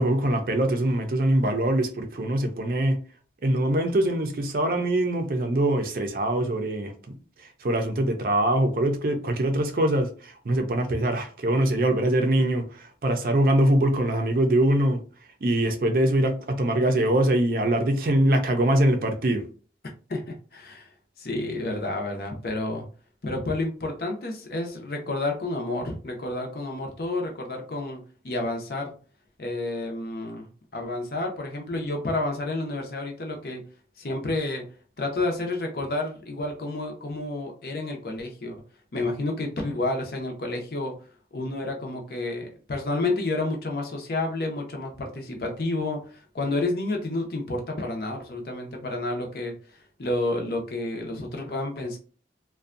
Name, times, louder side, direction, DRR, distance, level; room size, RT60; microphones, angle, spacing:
voice 1, 0.0-3.0 3.4-6.9 7.6-12.6 13.0-15.0 15.4-19.4, right 1 dB, 50° right, 0.5 m, -23 dB
voice 2, 20.1-20.9 21.2-22.9 23.2-28.9 29.4-33.6 34.0-34.7 35.0-38.6 38.9-41.0 41.3-52.0, left 2 dB, 55° left, 0.6 m, -30 dB
2.6 x 2.2 x 2.4 m
head